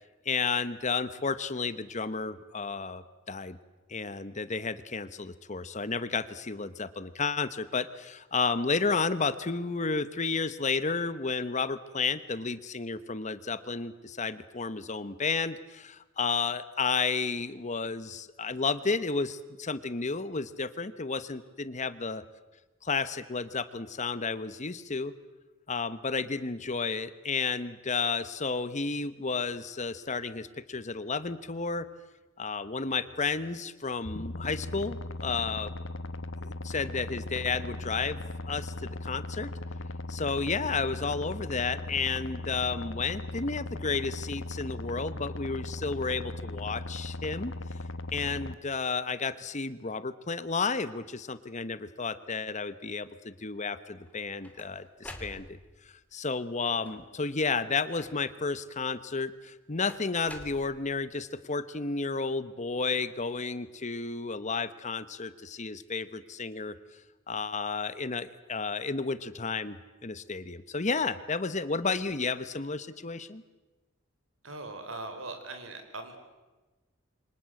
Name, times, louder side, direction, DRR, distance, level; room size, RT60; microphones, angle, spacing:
voice 1, 0.2-3.6 3.9-22.2 22.8-25.1 25.7-31.9 32.4-35.7 36.4-38.2 38.5-39.5 40.1-47.5 48.1-55.6 56.1-66.7 67.3-69.8 70.0-73.4, left 4 dB, 35° left, 14 dB, 1.1 m, -32 dB
sound 1, 34.0-48.5, left 2 dB, 65° left, 1.3 m, -38 dB
sound 2, 54.0-55.9 56.7-57.3 58.0-58.5 59.9-61.2, left 1 dB, 5° left, 2.7 m, -48 dB
voice 2, 74.4-76.2, right 2 dB, 75° right, 7 dB, 4.5 m, -40 dB
28.0 x 25.0 x 7.8 m, 1.2 s
head